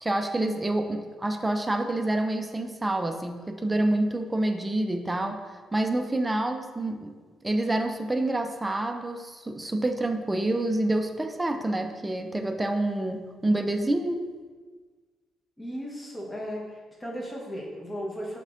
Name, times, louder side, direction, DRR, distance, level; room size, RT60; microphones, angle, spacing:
voice 1, 0.0-7.1 7.4-14.2, right 1 dB, 15° right, 5 dB, 0.4 m, -27 dB
voice 2, 15.6-18.4, equal, 20° left, -2 dB, 1.0 m, -36 dB
5.3 x 3.6 x 2.5 m, 1.4 s
cardioid pair, 90°, 0 cm